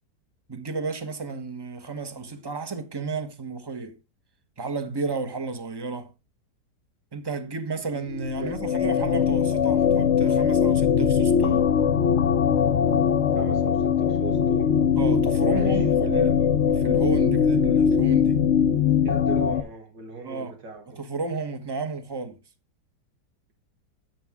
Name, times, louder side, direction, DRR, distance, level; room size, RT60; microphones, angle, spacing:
voice 1, 0.5-4.0 4.6-6.1 7.1-11.8 15.0-16.3 16.6-18.4 20.2-20.5 20.9-22.4, right 4 dB, 20° right, 0.8 m, -32 dB
sound 1, 8.0-19.6, left 7 dB, 55° left, 0.8 m, -21 dB
voice 2, 13.4-14.7 15.5-15.8 16.1-16.3 19.0-21.0, right 4 dB, 90° right, 2.2 m, -37 dB
10.0 x 7.1 x 3.5 m
omnidirectional pair, 1.8 m